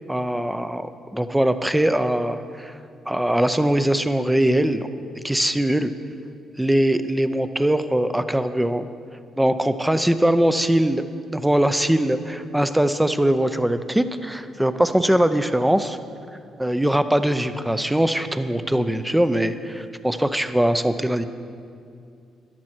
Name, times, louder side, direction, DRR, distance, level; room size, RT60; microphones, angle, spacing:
voice 1, 0.1-2.8 3.1-4.9 5.2-5.9 6.6-8.9 9.4-11.0 11.3-16.0 16.6-21.3, right 1 dB, 5° right, 11 dB, 0.6 m, -21 dB
13.5 x 11.0 x 4.5 m, 2.4 s
cardioid pair, 90°, 0 cm